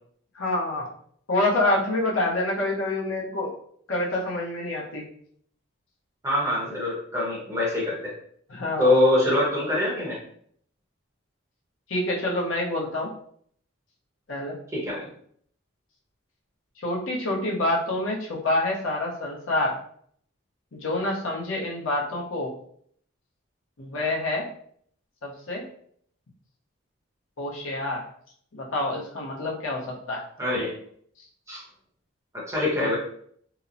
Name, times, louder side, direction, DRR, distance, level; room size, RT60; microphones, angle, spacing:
voice 1, 0.3-0.9 1.3-3.5 3.9-5.1 8.5-8.9 11.9-13.1 14.3-14.6 16.8-19.7 20.7-22.5 23.8-24.5 25.2-25.6 27.4-28.0 28.5-30.2 32.8-32.9, left 2 dB, 80° left, -3 dB, 0.7 m, -27 dB
voice 2, 6.2-8.1 8.8-10.2 14.7-15.0 30.4-30.7 31.5-31.6 32.3-33.0, left 1 dB, 15° right, -6 dB, 0.8 m, -24 dB
2.9 x 2.0 x 2.5 m, 0.63 s
head